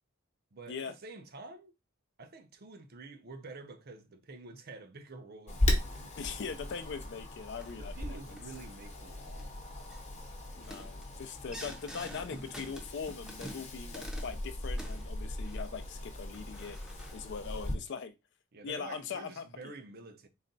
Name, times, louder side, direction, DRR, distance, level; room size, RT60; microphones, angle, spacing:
voice 1, 0.5-1.7 2.2-6.1 7.8-9.6 18.5-20.3, right 3 dB, 50° right, 0.6 m, -49 dB
Wind, 5.5-17.7, left 1 dB, 35° left, 0.9 m, -37 dB
voice 2, 6.2-8.3 10.6-16.8 17.1-18.1 18.6-19.7, left 5 dB, 60° left, 0.4 m, -41 dB
sound 1, 6.7-7.1 7.6-7.8 8.4-8.7 9.1-9.4 9.8-10.1 10.5-14.4 14.7-15.8 16.3-17.3, equal, 5° right, 0.6 m, -48 dB
4.0 x 2.2 x 3.9 m
head